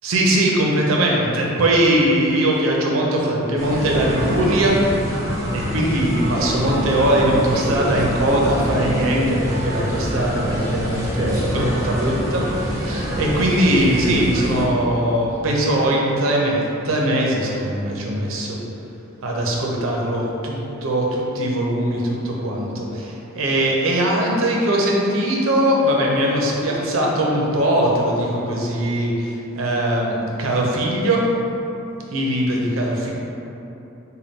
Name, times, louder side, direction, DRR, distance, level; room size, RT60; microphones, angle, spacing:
voice 1, 0.0-4.8 5.5-12.4 12.7-18.6 19.2-31.2 32.1-33.1, right 1 dB, 85° right, -2 dB, 0.6 m, -20 dB
sound 1, 3.6-14.7, equal, 15° right, 0.5 m, -25 dB
3.5 x 2.2 x 4.0 m, 3.0 s
head